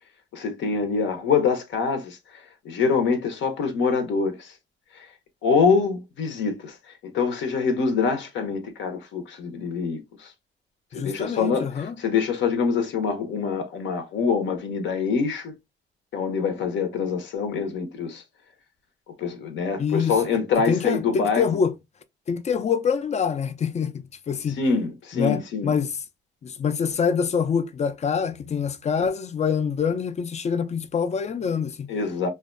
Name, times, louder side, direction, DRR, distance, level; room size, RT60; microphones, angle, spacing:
voice 1, 0.3-4.6 4.9-5.1 5.4-10.3 10.9-15.5 16.1-18.2 19.2-21.5 24.5-25.7 31.9-32.3, left 5 dB, 70° left, 0.7 m, -25 dB
voice 2, 10.9-11.9 19.8-20.1 20.7-21.7 22.3-23.9 24.3-24.6 25.1-25.9 26.4-31.9, left 6 dB, 35° left, 0.4 m, -25 dB
2.5 x 2.2 x 2.4 m
cardioid pair, 90°, 20 cm